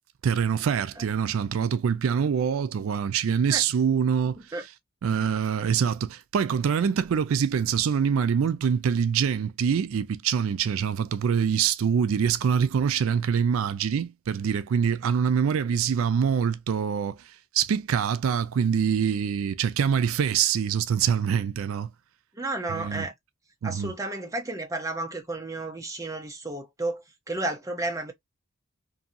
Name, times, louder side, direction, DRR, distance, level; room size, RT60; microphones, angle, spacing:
voice 1, 0.2-4.4 5.0-17.2 17.5-21.9 22.7-23.1 23.6-23.9, right 7 dB, 75° right, 0.4 m, -25 dB
voice 2, 22.4-23.1 23.6-28.1, right 2 dB, 15° right, 0.7 m, -32 dB
2.7 x 2.7 x 2.5 m
head